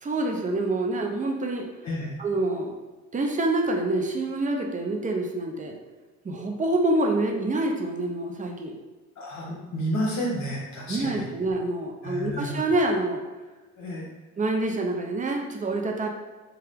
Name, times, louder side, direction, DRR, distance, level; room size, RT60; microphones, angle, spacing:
voice 1, 0.0-1.7 2.2-2.8 3.1-5.7 6.2-8.7 10.9-13.2 14.4-16.1, right 2 dB, 25° right, 1 dB, 0.5 m, -26 dB
voice 2, 1.8-2.1 9.2-11.3 12.0-12.6 13.8-14.1, equal, 65° left, -3 dB, 1.0 m, -31 dB
2.8 x 2.3 x 3.4 m, 1.2 s
cardioid pair, 90°, 30 cm